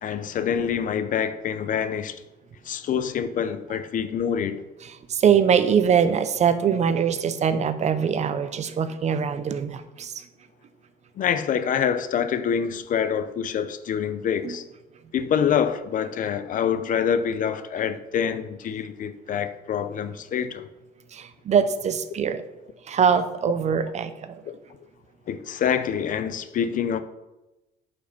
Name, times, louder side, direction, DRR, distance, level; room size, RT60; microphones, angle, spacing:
voice 1, 0.0-2.2 2.7-4.6 11.2-14.6 15.1-20.7 25.3-27.0, left 8 dB, 50° left, 0.6 m, -26 dB
voice 2, 5.1-10.1 14.4-14.6 21.1-22.4 22.9-24.4, right 7 dB, 40° right, 0.7 m, -22 dB
8.6 x 5.3 x 5.4 m
cardioid pair, 110°, 17 cm